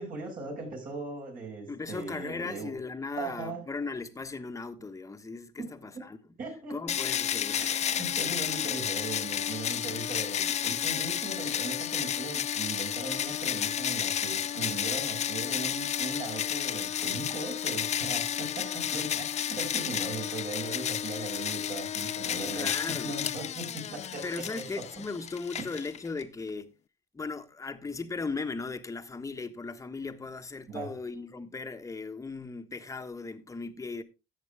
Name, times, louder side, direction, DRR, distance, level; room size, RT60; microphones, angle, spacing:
voice 1, 0.0-2.8 3.2-3.7 5.6-5.7 6.4-6.8 7.5-24.9 25.6-25.7 30.7-31.0, right 3 dB, 55° right, 6.8 m, -39 dB
voice 2, 1.7-6.2 6.7-7.7 22.5-23.1 24.2-26.7 27.1-34.0, left 4 dB, 20° left, 1.3 m, -37 dB
sound 1, 6.9-26.2, left 9 dB, 40° left, 0.5 m, -32 dB
13.5 x 8.3 x 3.5 m
cardioid pair, 110°, 17 cm